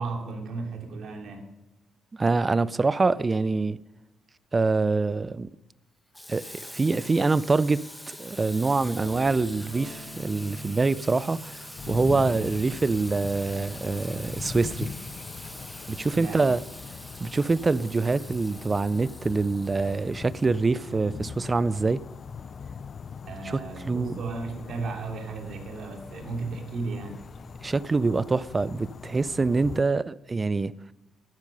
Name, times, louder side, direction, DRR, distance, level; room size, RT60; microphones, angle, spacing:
voice 1, 0.0-1.5 16.1-16.5 23.2-27.2, right 3 dB, 65° right, 2.7 m, -35 dB
voice 2, 2.1-3.8 4.5-5.5 6.3-14.9 15.9-16.6 17.2-22.0 23.4-24.2 27.6-30.7, right 3 dB, 25° right, 0.5 m, -25 dB
Water tap faucet / Sink (filling or washing), 6.1-20.9, left 1 dB, 5° left, 1.3 m, -44 dB
sound 1, 8.5-16.4, equal, 65° left, 3.5 m, -46 dB
sound 2, 11.8-29.8, left 6 dB, 45° left, 0.5 m, -41 dB
12.0 x 10.0 x 5.5 m
cardioid pair, 90°, 0 cm